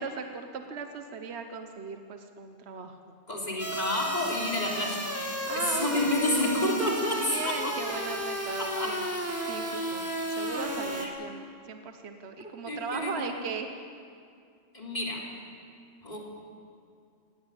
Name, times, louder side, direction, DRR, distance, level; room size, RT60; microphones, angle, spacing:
voice 1, 0.0-3.2 5.5-6.0 7.2-9.1 9.5-10.1 10.4-13.7, right 5 dB, 65° right, 6 dB, 1.3 m, -38 dB
voice 2, 3.3-5.2 5.5-7.8 8.6-9.0 11.0-11.1 12.4-13.3 14.7-15.3 16.0-16.2, left 1 dB, 35° left, -2 dB, 3.6 m, -30 dB
sound 1, 3.6-11.1, equal, 10° right, 2.1 m, -33 dB
18.0 x 17.5 x 9.0 m, 2.3 s
omnidirectional pair, 1.2 m